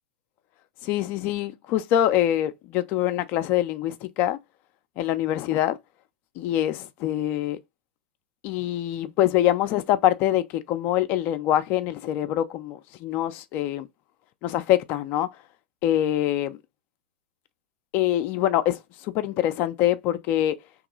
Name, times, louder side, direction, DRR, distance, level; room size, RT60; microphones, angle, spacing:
voice 1, 0.8-4.4 5.0-5.8 6.4-7.6 8.4-13.9 14.4-15.3 15.8-16.6 17.9-18.8 19.1-20.5, left 12 dB, 40° left, 0.4 m, -24 dB
3.0 x 2.9 x 3.6 m
figure-of-eight pair, 95°, 5 cm